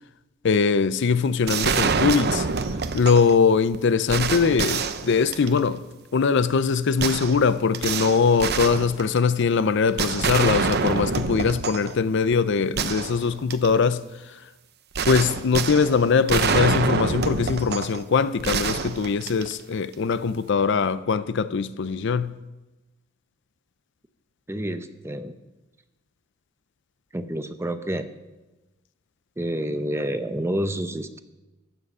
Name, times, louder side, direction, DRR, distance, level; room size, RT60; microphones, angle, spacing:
voice 1, 0.4-2.5 2.9-5.8 6.1-14.4 15.0-22.4, left 5 dB, 60° left, 0.5 m, -22 dB
sound 1, 1.5-3.4 3.7-3.8 4.1-5.7 7.0-9.4 10.0-11.9 12.3-12.4 12.8-13.8 14.9-18.0 18.4-19.7, right 5 dB, 55° right, 0.7 m, -26 dB
voice 2, 24.5-25.3 27.1-28.1 29.4-31.2, right 1 dB, 15° right, 0.7 m, -28 dB
14.5 x 9.9 x 5.5 m
head